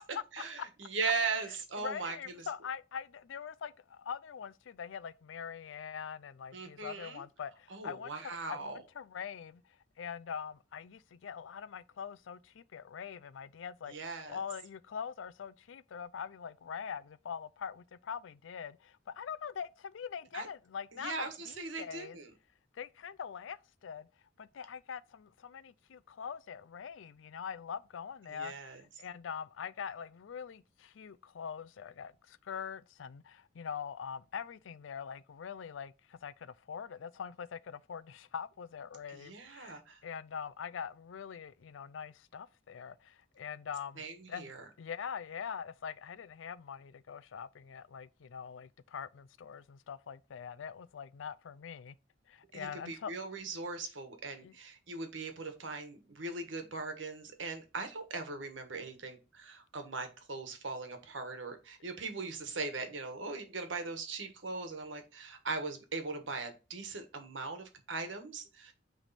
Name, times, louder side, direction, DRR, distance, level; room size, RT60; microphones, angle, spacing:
voice 1, 0.3-2.2 6.5-7.2 7.7-8.8 13.9-14.4 20.3-20.5 20.9-22.3 28.3-28.8 39.1-40.0 44.0-44.6 52.5-68.7, right 4 dB, 75° right, 1.4 m, -39 dB
voice 2, 1.8-9.6 10.0-22.2 22.7-24.1 24.4-44.5 44.8-52.0 52.3-53.1 54.4-54.5, left 7 dB, 80° left, 0.4 m, -43 dB
8.9 x 3.4 x 4.1 m
head